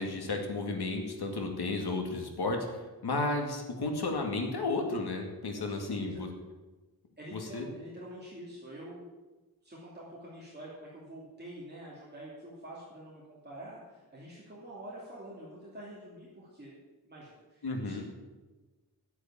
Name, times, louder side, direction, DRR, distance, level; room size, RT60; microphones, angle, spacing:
voice 1, 0.0-6.3 7.3-7.7 17.6-18.0, left 3 dB, 80° left, 3 dB, 2.2 m, -33 dB
voice 2, 5.5-6.2 7.2-9.1 9.6-16.7 17.0-18.0, right 1 dB, 25° right, -7 dB, 2.8 m, -47 dB
10.0 x 8.3 x 8.6 m, 1.2 s
wide cardioid pair, 145°, 38 cm